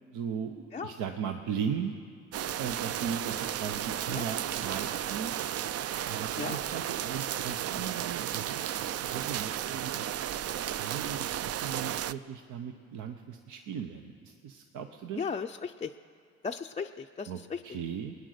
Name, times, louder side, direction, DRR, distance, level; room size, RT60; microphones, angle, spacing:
voice 1, 0.1-1.9 2.6-5.3 6.1-10.1 10.8-15.2 17.3-18.1, right 7 dB, 85° right, 5 dB, 0.8 m, -37 dB
sound 1, 2.3-12.1, right 11 dB, 55° right, 0.4 m, -34 dB
voice 2, 15.1-15.9 16.4-17.6, left 5 dB, 20° left, 3 dB, 0.4 m, -36 dB
20.5 x 9.6 x 6.5 m, 2.2 s
cardioid pair, 90°, 30 cm